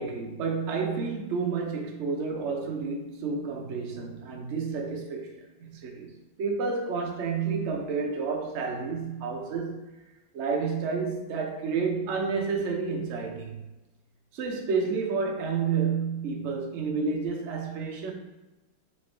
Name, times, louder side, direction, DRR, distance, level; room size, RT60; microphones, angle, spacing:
voice 1, 0.0-5.3 5.6-9.8 10.3-13.6 14.3-18.1, right 5 dB, 70° right, 1 dB, 0.6 m, -30 dB
3.3 x 3.1 x 4.3 m, 1.0 s
omnidirectional pair, 2.1 m